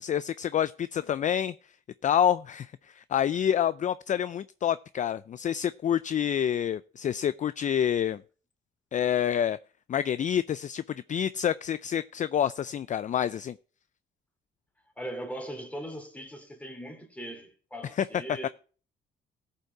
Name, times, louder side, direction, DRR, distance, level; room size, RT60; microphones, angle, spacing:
voice 1, 0.0-1.5 2.0-8.2 8.9-9.6 9.9-13.6 18.0-18.1, left 9 dB, 40° left, 0.4 m, -27 dB
voice 2, 15.0-18.5, right 1 dB, 5° left, 2.8 m, -39 dB
15.5 x 5.5 x 4.6 m
cardioid pair, 90°, 20 cm